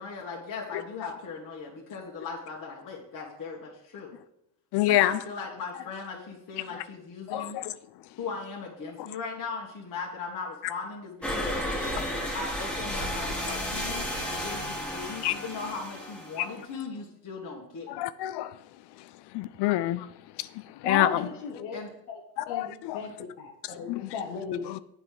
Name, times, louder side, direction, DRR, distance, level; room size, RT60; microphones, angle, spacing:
voice 1, 0.0-4.1 4.9-7.6 8.2-11.6 12.3-18.1 21.1-21.3 21.7-21.9, left 4 dB, 45° left, 1.7 m, -38 dB
voice 2, 4.7-5.2 7.3-7.7 15.2-15.3 16.4-16.5 17.9-18.5 19.3-20.1 20.4-20.5 20.8-21.2 22.4-23.0 23.9-24.1 24.7-24.8, left 15 dB, 60° left, 0.5 m, -27 dB
sound 1, 11.2-16.7, equal, 5° left, 1.8 m, -33 dB
voice 3, 20.8-21.8 22.1-22.2 22.5-22.7 22.9-24.6, left 6 dB, 85° left, 1.1 m, -34 dB
8.0 x 5.4 x 4.8 m
supercardioid pair, 65°, 46 cm